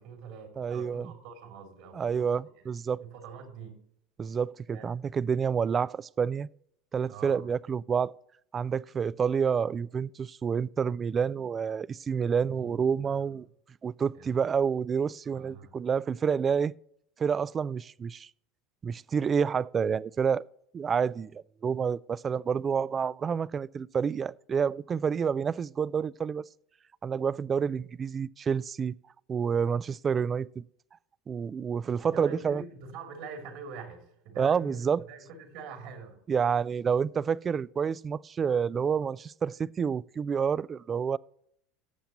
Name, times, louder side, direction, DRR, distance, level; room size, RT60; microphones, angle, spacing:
voice 1, 0.0-2.3 3.0-3.8 4.7-4.9 7.1-7.5 12.1-13.4 14.1-14.3 15.3-15.7 32.0-36.2, right 5 dB, 65° right, 2.9 m, -45 dB
voice 2, 0.6-1.1 1.9-3.0 4.2-6.5 6.9-8.1 8.5-13.5 13.8-16.7 17.2-18.3 18.8-20.4 20.7-26.4 27.0-28.9 29.3-30.6 31.3-32.6 34.4-35.1 36.3-41.2, right 6 dB, 30° right, 0.3 m, -28 dB
17.5 x 7.1 x 2.9 m
supercardioid pair, 105°, 0 cm